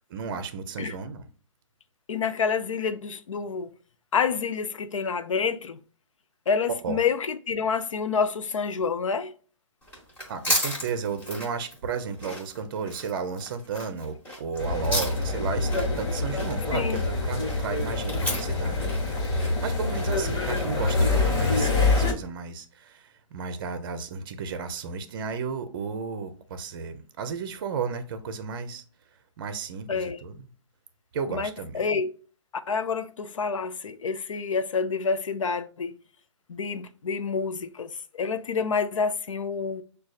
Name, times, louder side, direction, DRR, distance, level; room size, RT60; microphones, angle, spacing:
voice 1, 0.1-1.3 6.8-7.0 10.3-28.8 29.4-30.4 31.1-31.8, right 5 dB, 45° right, 0.5 m, -34 dB
voice 2, 2.1-3.7 4.1-5.8 6.5-9.3 16.7-17.0 29.9-30.2 31.3-31.5 31.7-32.1 32.7-36.0 36.5-39.8, left 5 dB, 80° left, 0.5 m, -28 dB
sound 1, 9.8-22.1, equal, 10° left, 1.1 m, -35 dB
sound 2, 14.6-22.1, left 3 dB, 50° left, 1.4 m, -26 dB
6.1 x 2.3 x 2.3 m
hypercardioid pair, 145°, 16 cm